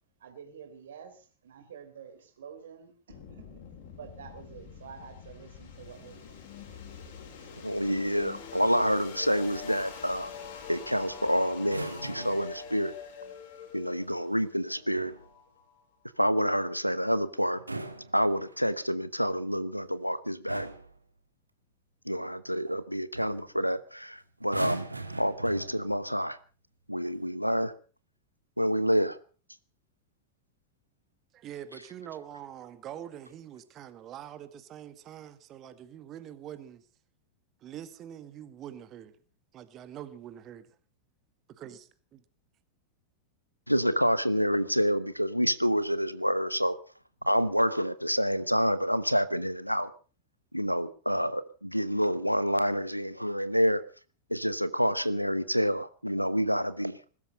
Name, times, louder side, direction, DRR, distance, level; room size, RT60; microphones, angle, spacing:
voice 1, 0.2-3.6 4.0-6.8, right 7 dB, 60° right, 3.6 m, -49 dB
sound 1, 3.1-15.9, left 6 dB, 50° left, 5.8 m, -45 dB
voice 2, 7.6-10.3 10.7-12.9 13.7-15.1 16.2-17.6 18.1-20.7 22.1-24.9 25.2-26.4 26.9-27.7 28.6-29.2 43.7-46.8 47.2-49.9 50.5-53.8 54.3-57.0, equal, 90° left, 1.0 m, -28 dB
sound 2, 11.6-12.6 14.7-15.3 17.4-18.8 19.8-20.1 20.5-21.0 22.7-22.8 23.1-23.5 24.4-26.1 27.0-27.3, right 2 dB, 85° right, 1.6 m, -40 dB
voice 3, 31.3-36.9 37.6-39.2 39.5-40.8 41.5-42.2, right 10 dB, 30° right, 1.8 m, -44 dB
20.5 x 13.0 x 5.4 m
figure-of-eight pair, 90°, 0 cm